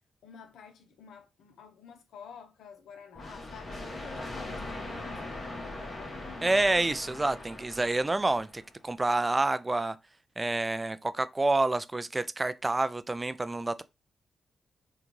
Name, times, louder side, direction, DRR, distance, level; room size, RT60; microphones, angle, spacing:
voice 1, 0.2-6.5, left 6 dB, 90° left, 0.6 m, -50 dB
sound 1, 3.1-8.7, left 2 dB, 45° left, 1.2 m, -40 dB
voice 2, 6.4-10.0 10.4-13.8, right 2 dB, 25° right, 0.3 m, -28 dB
3.7 x 2.3 x 3.0 m
cardioid pair, 60°, 0 cm